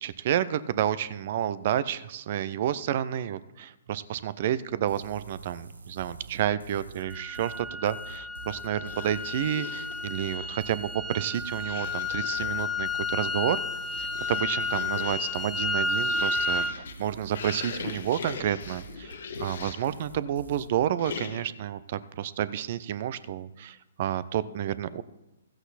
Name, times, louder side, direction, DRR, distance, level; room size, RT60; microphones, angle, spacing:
voice 1, 0.0-13.6 14.0-25.0, right 10 dB, 50° right, 16 dB, 0.6 m, -30 dB
sound 1, 4.9-20.7, right 3 dB, 85° right, 1.0 m, -46 dB
sound 2, 7.1-16.8, left 3 dB, 5° left, 0.5 m, -31 dB
sound 3, 8.7-10.7 11.5-12.8 13.5-20.0 21.0-21.7, left 6 dB, 60° left, 1.2 m, -41 dB
14.5 x 7.9 x 4.2 m, 0.99 s
figure-of-eight pair, 130°, 0 cm